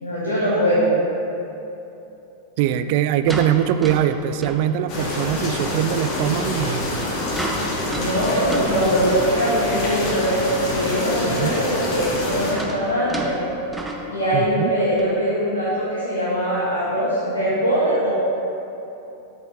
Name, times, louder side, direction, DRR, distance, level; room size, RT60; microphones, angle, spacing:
voice 1, 0.0-0.9 8.0-13.4 14.1-18.1, equal, 70° left, -9 dB, 1.7 m, -22 dB
sound 1, 0.6-0.8 2.7-5.3 5.7-5.9 6.7-9.5 10.1-10.2 10.4-10.5 11.9-14.6 15.0-15.2 15.8-15.9, right 2 dB, 5° right, 0.8 m, -33 dB
voice 2, 2.6-7.1 8.6-8.7 11.3-11.6 14.3-14.7, right 10 dB, 50° right, 11 dB, 0.4 m, -22 dB
sound 2, 4.9-12.5, left 2 dB, 35° left, 1.8 m, -26 dB
12.5 x 6.5 x 3.4 m, 2.9 s
figure-of-eight pair, 90°, 0 cm